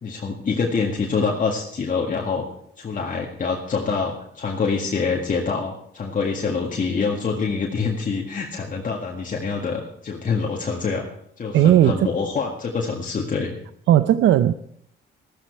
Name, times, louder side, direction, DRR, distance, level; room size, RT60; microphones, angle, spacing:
voice 1, 0.0-2.5 2.8-11.1 11.4-13.5, left 5 dB, 40° left, -1 dB, 1.9 m, -25 dB
voice 2, 11.5-12.1 13.9-14.5, right 12 dB, 70° right, 13 dB, 0.6 m, -16 dB
14.0 x 13.5 x 4.6 m, 0.70 s
cardioid pair, 90°, 20 cm